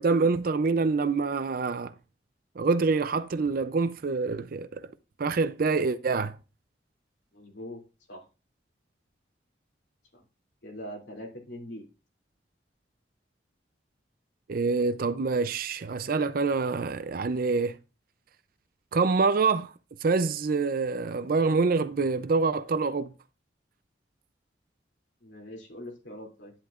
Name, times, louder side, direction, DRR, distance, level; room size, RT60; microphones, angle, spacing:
voice 1, 0.0-1.9 2.6-4.8 5.2-6.4 14.5-17.8 18.9-19.7 20.0-23.1, right 4 dB, 55° right, 0.5 m, -26 dB
voice 2, 7.3-7.8 8.1-8.2 10.1-10.2 10.6-11.8 25.2-26.5, equal, 90° left, 2.7 m, -42 dB
10.5 x 10.5 x 2.5 m
head